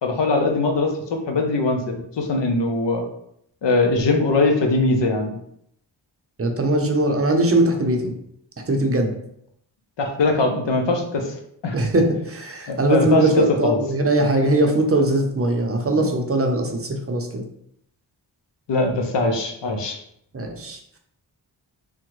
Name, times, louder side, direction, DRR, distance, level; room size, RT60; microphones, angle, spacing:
voice 1, 0.0-3.0 3.6-5.4 10.0-11.3 11.6-11.8 12.7-13.8 16.0-16.1 18.7-20.0, left 3 dB, 75° left, 4 dB, 0.7 m, -21 dB
voice 2, 6.4-8.1 8.7-9.2 11.7-17.4 20.3-20.8, right 2 dB, 30° right, 3 dB, 0.6 m, -20 dB
3.5 x 2.1 x 3.1 m, 0.72 s
wide cardioid pair, 65°, 44 cm